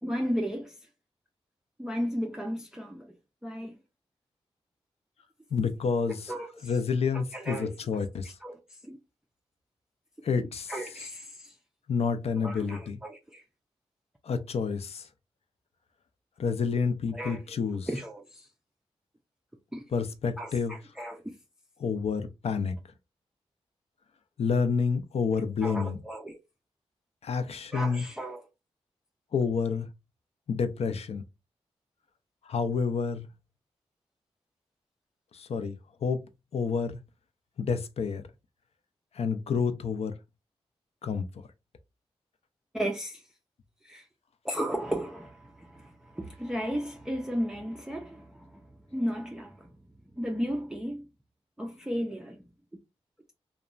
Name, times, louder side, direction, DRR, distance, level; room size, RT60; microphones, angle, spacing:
voice 1, 0.0-0.7 1.8-3.1 3.4-3.8 6.0-6.8 7.1-9.0 10.4-11.5 12.4-13.4 17.1-18.5 19.7-19.8 20.4-21.3 25.6-26.4 27.7-28.5 42.7-43.2 43.8-44.1 44.4-48.6 48.9-49.7 50.1-51.1 51.6-52.4, equal, 5° right, 0.4 m, -35 dB
voice 2, 5.5-6.3 6.6-8.4 10.2-10.7 11.9-13.0 14.2-15.1 16.4-17.9 19.9-20.7 21.8-22.7 24.4-26.0 27.2-28.0 29.3-29.9 30.5-31.2 32.4-33.3 35.3-35.7 36.0-36.2 36.5-37.0 37.6-38.2 39.1-40.1 41.0-41.2, left 5 dB, 70° left, 0.4 m, -29 dB
2.9 x 2.1 x 2.4 m
wide cardioid pair, 105°, 11 cm